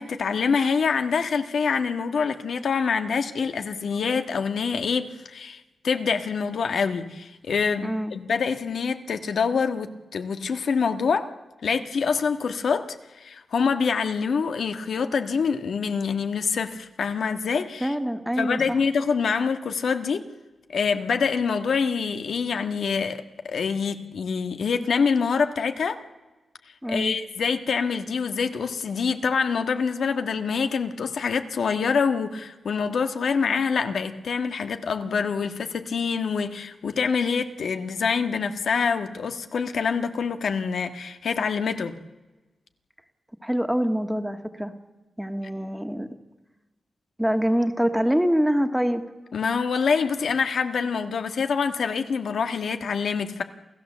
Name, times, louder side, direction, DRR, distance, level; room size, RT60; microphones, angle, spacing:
voice 1, 0.0-11.3 11.6-17.9 18.4-20.3 20.7-26.0 26.9-41.9 49.3-53.4, left 5 dB, 80° left, 7 dB, 1.5 m, -25 dB
voice 2, 7.8-8.1 17.8-18.8 26.8-27.2 43.4-44.7 45.2-46.1 47.2-49.0, equal, 5° right, 7 dB, 1.7 m, -25 dB
28.5 x 16.0 x 7.4 m, 1.1 s
cardioid pair, 85°, 0 cm